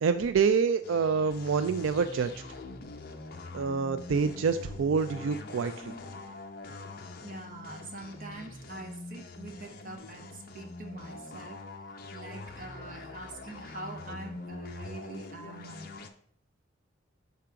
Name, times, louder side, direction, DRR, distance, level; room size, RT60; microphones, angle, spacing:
voice 1, 0.0-2.3 3.5-5.9, right 5 dB, 80° right, 10 dB, 0.4 m, -27 dB
sound 1, 0.8-16.1, left 3 dB, 50° left, 0.7 m, -44 dB
voice 2, 7.2-11.6 12.1-15.9, right 2 dB, 45° right, 3 dB, 1.2 m, -44 dB
6.8 x 3.7 x 5.7 m, 0.66 s
head